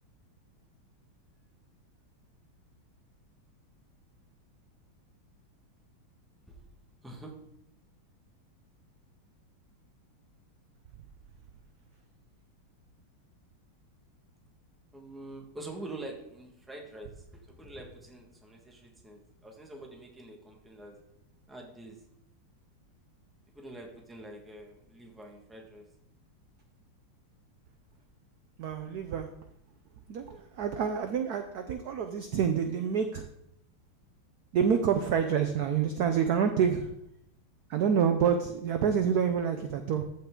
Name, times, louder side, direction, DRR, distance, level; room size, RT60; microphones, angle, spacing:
voice 1, 14.9-20.9 21.5-22.0 23.5-25.8 30.3-30.4, right 2 dB, ahead, 0 dB, 1.2 m, -45 dB
voice 2, 28.6-29.3 30.1-33.3 34.5-36.9 37.7-40.0, right 7 dB, 70° right, 7 dB, 0.9 m, -27 dB
14.5 x 5.8 x 3.7 m, 0.78 s
omnidirectional pair, 2.3 m